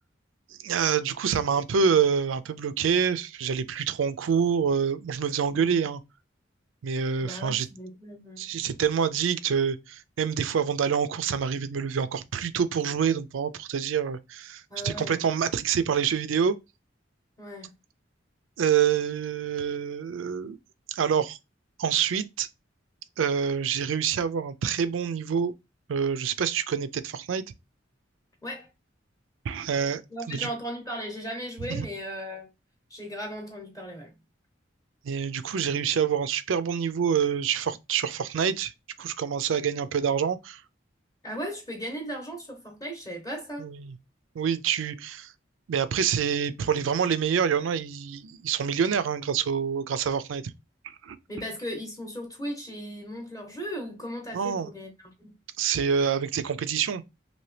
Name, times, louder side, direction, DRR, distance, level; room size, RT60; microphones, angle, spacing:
voice 1, 0.5-6.0 6.8-7.7 8.4-16.6 18.6-20.6 20.9-21.4 21.8-22.5 23.2-25.5 25.9-27.4 29.4-30.0 30.3-30.5 31.7-31.9 35.0-38.7 39.0-40.6 43.6-43.9 44.4-45.3 45.7-50.4 50.8-51.2 54.3-54.7 55.6-57.0, right 7 dB, 85° right, 0.4 m, -26 dB
voice 2, 7.2-8.7 14.7-15.2 17.4-17.7 28.4-28.7 30.1-32.5 32.9-34.1 41.2-43.7 51.3-55.4, equal, 20° left, 0.8 m, -37 dB
2.8 x 2.7 x 3.1 m
head